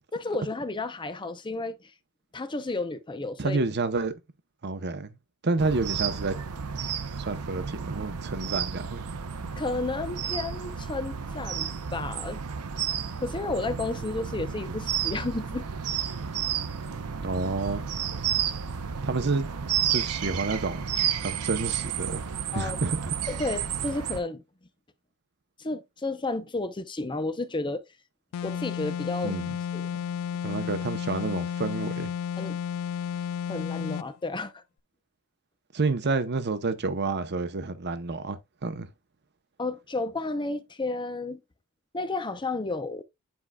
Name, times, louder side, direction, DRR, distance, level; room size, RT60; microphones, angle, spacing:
voice 1, 0.1-1.9 2.3-3.6 9.4-12.4 13.2-15.7 22.5-22.8 23.3-24.4 25.6-27.9 28.4-29.4 29.7-30.3 32.4-32.6 33.5-34.6 39.6-41.4 41.9-43.0, left 2 dB, 20° left, 0.6 m, -32 dB
voice 2, 3.4-4.1 4.6-5.2 5.4-6.4 7.2-9.0 17.2-17.8 19.0-20.8 21.2-22.3 22.5-23.1 29.2-29.6 30.4-32.1 35.7-38.9, right 3 dB, 50° right, 0.8 m, -29 dB
bute park ambience, 5.6-24.2, right 8 dB, 85° right, 0.7 m, -32 dB
sound 1, 28.3-34.1, left 8 dB, 80° left, 0.3 m, -32 dB
9.8 x 4.7 x 2.3 m
head